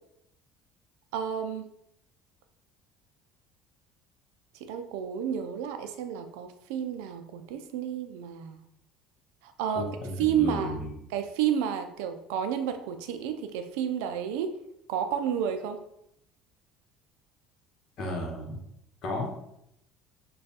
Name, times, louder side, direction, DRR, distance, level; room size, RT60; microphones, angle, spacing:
voice 1, 1.1-1.7 4.5-8.6 9.4-9.9 10.2-10.8 11.1-14.6 14.9-15.8, right 8 dB, 85° right, 8 dB, 0.4 m, -31 dB
voice 2, 9.7-10.9 18.0-18.6 19.0-19.3, left 1 dB, 55° left, 0 dB, 1.1 m, -33 dB
3.3 x 2.3 x 4.1 m, 0.78 s
supercardioid pair, 95°, 0 cm